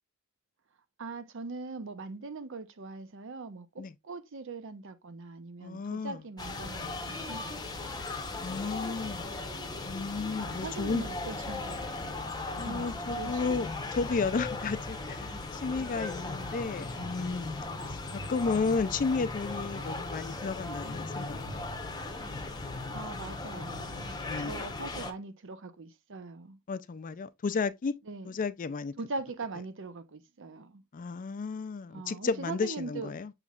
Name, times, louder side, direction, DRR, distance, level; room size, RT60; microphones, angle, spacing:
voice 1, 1.0-8.1 10.3-12.2 12.6-12.9 13.2-13.7 22.9-26.6 28.1-28.3 29.0-30.8 31.9-33.1, right 3 dB, 65° right, 0.7 m, -41 dB
voice 2, 5.6-6.2 8.4-9.4 9.9-11.0 12.6-17.5 17.9-21.7 22.3-22.6 24.3-24.6 26.7-28.0 28.3-28.9 30.9-33.3, left 4 dB, 40° left, 0.4 m, -33 dB
sound 1, 6.4-25.1, left 2 dB, 20° left, 0.8 m, -37 dB
6.9 x 3.1 x 2.3 m
head